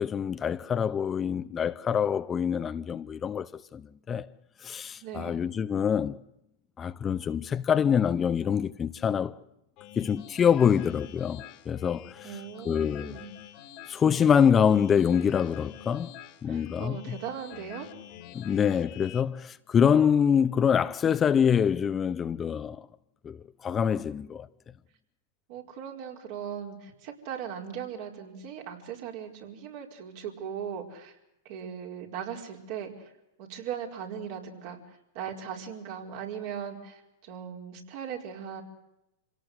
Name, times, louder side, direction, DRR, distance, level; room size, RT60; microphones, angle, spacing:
voice 1, 0.0-4.3 4.6-6.2 6.8-9.3 10.0-12.3 12.6-13.2 13.9-16.1 16.4-17.2 18.3-22.9 23.2-24.5, left 7 dB, 25° left, 0.8 m, -25 dB
voice 2, 5.0-5.5 12.2-13.3 16.5-17.9 25.5-31.2 31.4-33.1 33.4-38.6, right 8 dB, 55° right, 4.9 m, -39 dB
sound 1, 9.8-19.2, left 12 dB, 50° left, 2.2 m, -47 dB
27.0 x 17.5 x 8.1 m
hypercardioid pair, 115°, 0 cm